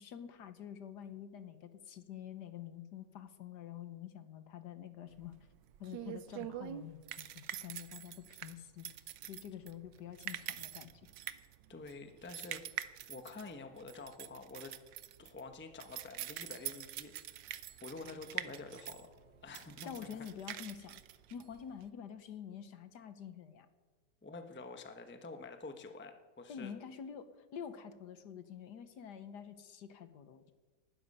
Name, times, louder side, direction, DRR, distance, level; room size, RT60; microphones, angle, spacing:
voice 1, 0.0-5.4 5.8-8.9 9.2-10.9 19.8-21.0 21.3-23.7 26.5-30.5, left 8 dB, 70° left, 11 dB, 1.5 m, -47 dB
sound 1, 5.2-21.9, right 12 dB, 80° right, 1.4 m, -45 dB
voice 2, 11.7-14.7 15.2-19.1 19.4-20.3 24.2-26.7, left 3 dB, 10° left, 7 dB, 0.7 m, -48 dB
Strum, 17.9-24.2, equal, 65° right, 4.2 m, -67 dB
19.0 x 12.5 x 5.5 m, 1.3 s
omnidirectional pair, 1.9 m